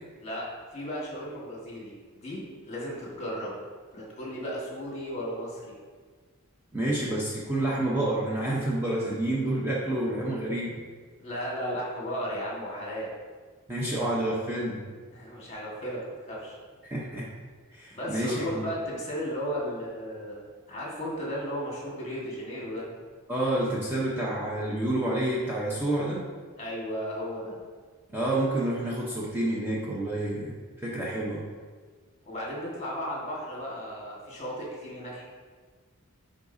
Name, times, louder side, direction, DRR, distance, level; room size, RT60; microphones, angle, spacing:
voice 1, 0.2-3.6 3.9-5.7 11.2-13.1 15.1-16.6 17.9-20.4 20.7-22.9 26.6-27.6 32.2-35.2, equal, 30° left, -4 dB, 1.6 m, -35 dB
voice 2, 6.7-10.8 13.7-14.8 16.8-17.3 17.7-18.6 23.3-26.3 28.1-30.5 30.8-31.4, right 1 dB, 10° right, -6 dB, 0.8 m, -29 dB
9.8 x 3.8 x 2.7 m, 1.5 s
head